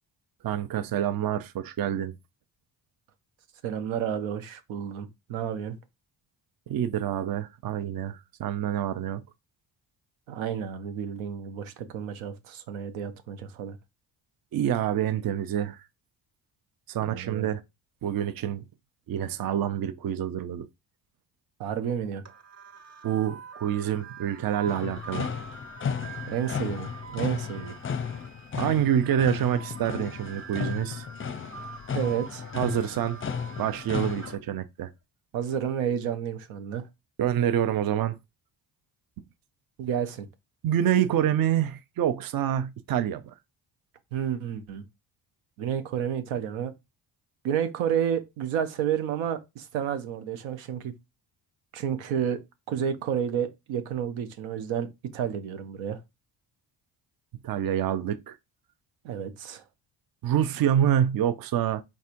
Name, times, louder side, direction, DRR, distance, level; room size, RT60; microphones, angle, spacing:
voice 1, 0.4-2.1 6.7-9.2 14.5-15.8 16.9-17.6 18.0-18.6 19.1-20.7 23.0-25.3 28.6-31.0 32.5-33.2 33.6-34.9 37.2-38.2 40.6-43.3 57.4-58.3 60.2-61.8, right 10 dB, 50° right, 0.6 m, -27 dB
voice 2, 3.6-5.8 10.3-13.8 17.0-17.5 21.6-22.2 26.3-27.8 31.9-32.4 35.3-36.9 39.8-40.3 44.1-44.8 45.6-46.7 47.4-50.9 51.7-52.4 52.7-56.0 59.0-59.6, right 8 dB, 85° right, 0.8 m, -30 dB
sound 1, 22.3-34.4, right 6 dB, 35° right, 1.1 m, -45 dB
sound 2, 24.7-34.4, left 6 dB, 25° left, 0.5 m, -34 dB
4.2 x 3.6 x 2.5 m
supercardioid pair, 65°, 46 cm